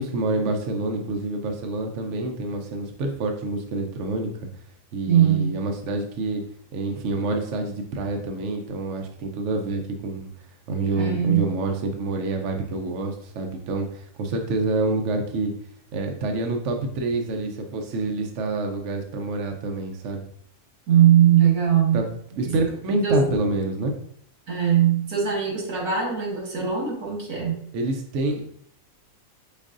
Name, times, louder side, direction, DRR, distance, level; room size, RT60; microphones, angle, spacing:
voice 1, 0.0-4.5 4.9-6.4 6.7-10.3 10.7-15.5 15.9-20.2 21.9-22.0 22.4-23.9 27.7-28.4, right 2 dB, 65° right, 3 dB, 0.9 m, -27 dB
voice 2, 5.1-5.5 10.9-11.4 20.9-22.0 22.4-22.5 23.0-23.3 24.5-27.6, right 9 dB, 85° right, -1 dB, 1.8 m, -20 dB
5.3 x 3.5 x 2.5 m, 0.64 s
omnidirectional pair, 1.6 m